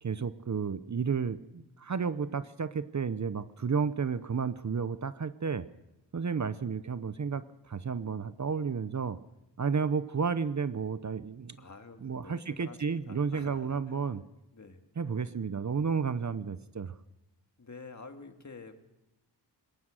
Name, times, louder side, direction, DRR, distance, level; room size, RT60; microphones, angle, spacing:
voice 1, 0.0-5.6 6.1-9.2 9.6-11.6 12.0-14.2 15.0-16.9, right 6 dB, 40° right, 13 dB, 0.8 m, -32 dB
voice 2, 11.6-14.0 14.5-14.8 17.6-18.8, left 4 dB, 40° left, 6 dB, 2.1 m, -49 dB
21.5 x 18.5 x 6.4 m, 0.96 s
wide cardioid pair, 95°, 43 cm